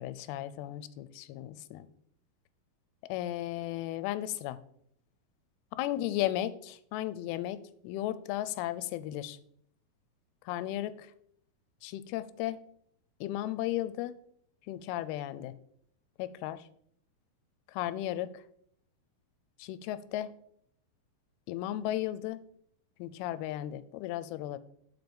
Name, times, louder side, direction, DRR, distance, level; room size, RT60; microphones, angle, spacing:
voice 1, 0.0-1.9 3.0-4.6 5.8-9.4 10.5-11.1 11.8-12.6 13.2-14.1 14.7-15.5 16.2-16.7 17.7-18.4 19.6-20.3 21.5-22.4 23.0-24.6, left 13 dB, 90° left, 15 dB, 2.5 m, -35 dB
6.0 x 5.4 x 6.8 m, 0.67 s
omnidirectional pair, 4.4 m